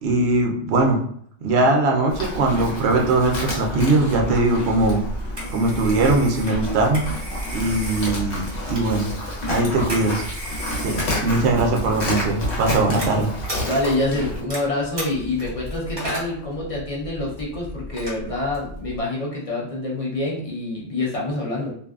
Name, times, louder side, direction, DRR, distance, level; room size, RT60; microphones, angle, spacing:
voice 1, 0.0-1.0 1.4-5.0 5.5-7.0 7.5-9.1 9.5-10.2 10.8-13.3, right 2 dB, 65° right, 1 dB, 0.8 m, -20 dB
Livestock farm animals working animals, 2.1-14.4, left 1 dB, 65° left, 1.0 m, -29 dB
Telephone, 4.8-19.0, equal, 25° right, 0.7 m, -35 dB
voice 2, 13.6-21.7, left 2 dB, 40° left, -4 dB, 0.6 m, -26 dB
2.6 x 2.2 x 2.3 m, 0.63 s
omnidirectional pair, 1.3 m